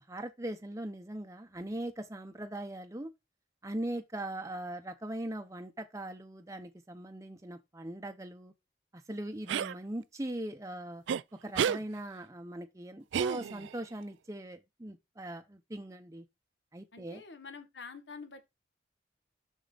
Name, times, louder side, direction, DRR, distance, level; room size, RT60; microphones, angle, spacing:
voice 1, 0.0-3.1 3.6-8.5 8.9-11.0 11.4-16.2 16.7-17.2, right 1 dB, 15° right, 0.7 m, -40 dB
sound 1, 9.5-9.7 11.1-11.2 11.6-11.8 13.1-13.8, right 8 dB, 85° right, 0.4 m, -30 dB
voice 2, 16.9-18.5, left 4 dB, 80° left, 1.4 m, -47 dB
6.9 x 6.2 x 3.9 m
head